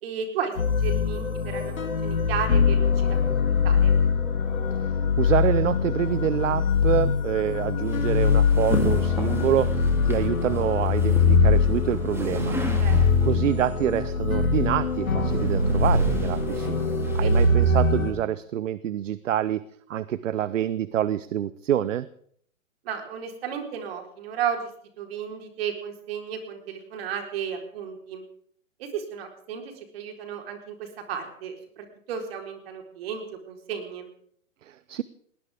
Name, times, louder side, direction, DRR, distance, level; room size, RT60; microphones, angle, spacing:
voice 1, 0.0-1.7 2.0-3.4 3.6-4.0 12.8-13.2 17.2-17.5 22.8-24.6 25.0-28.2 28.8-34.1, right 7 dB, 45° right, 4 dB, 4.2 m, -34 dB
sound 1, 0.6-18.1, left 4 dB, 90° left, 3.6 m, -22 dB
voice 2, 4.8-12.6 13.0-16.8 17.1-19.6 19.9-22.1 34.7-35.0, right 11 dB, 65° right, 17 dB, 0.8 m, -27 dB
sound 2, 7.8-13.5 14.5-18.1, right 2 dB, 5° right, 3.1 m, -37 dB
20.0 x 19.0 x 3.6 m, 0.63 s
hypercardioid pair, 140°, 41 cm